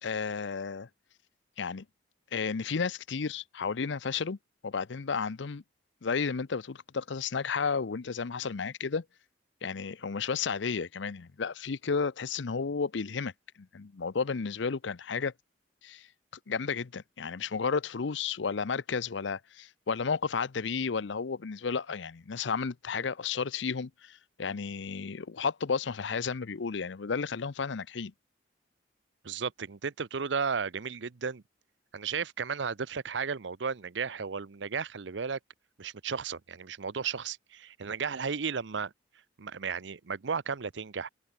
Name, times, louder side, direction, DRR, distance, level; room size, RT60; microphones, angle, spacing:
voice 1, 0.0-0.9 1.6-1.8 2.3-4.4 4.6-5.6 6.0-9.0 9.6-13.3 13.6-15.3 15.8-16.1 16.5-28.1, left 5 dB, 75° left, 0.6 m, -32 dB
voice 2, 29.2-31.4 31.9-35.4 35.8-38.9 39.4-41.1, right 5 dB, 75° right, 0.7 m, -34 dB
head